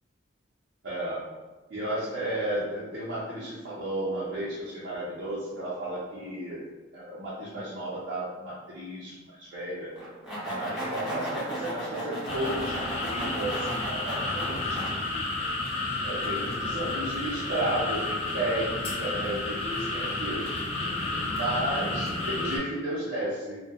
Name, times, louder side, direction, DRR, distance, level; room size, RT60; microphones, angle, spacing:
voice 1, 0.8-1.2 1.7-6.6 6.9-9.9 10.4-15.4 16.0-20.5 21.1-23.6, right 1 dB, 65° right, -9 dB, 0.6 m, -33 dB
sound 1, 10.0-14.9, right 1 dB, 5° right, 0.8 m, -35 dB
sound 2, 12.3-22.6, left 2 dB, 30° left, 0.4 m, -31 dB
2.3 x 2.1 x 2.7 m, 1.2 s
head